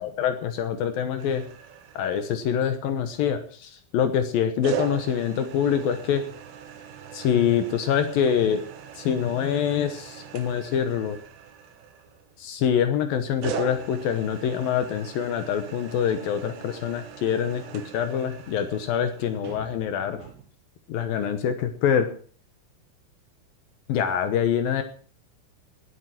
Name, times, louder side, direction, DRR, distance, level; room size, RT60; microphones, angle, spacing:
voice 1, 0.0-1.4 1.9-6.3 7.1-8.6 9.0-11.2 12.4-20.3 20.9-22.1 23.9-24.8, left 8 dB, 75° left, 8 dB, 2.2 m, -25 dB
sound 1, 1.2-2.7 4.6-12.5 13.4-20.4, right 8 dB, 85° right, 4.2 m, -40 dB
18.5 x 8.2 x 5.9 m, 0.44 s
omnidirectional pair, 5.5 m